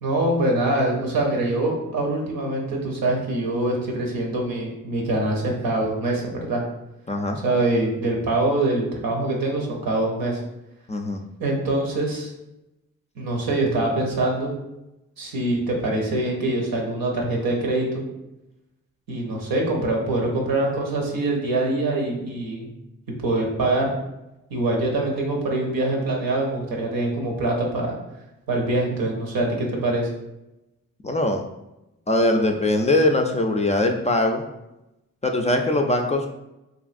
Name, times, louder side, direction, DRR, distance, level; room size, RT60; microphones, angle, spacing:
voice 1, 0.0-6.6 7.4-10.4 11.4-12.3 13.2-14.5 15.2-18.0 19.1-22.7 23.1-23.9 24.5-28.0 28.5-30.1, right 2 dB, 85° right, -1 dB, 0.7 m, -24 dB
voice 2, 7.1-7.4 10.9-11.2 31.0-31.4 32.1-34.5 35.2-36.3, left 1 dB, 20° left, 3 dB, 0.3 m, -21 dB
2.9 x 2.5 x 2.4 m, 0.93 s
supercardioid pair, 40°, 35 cm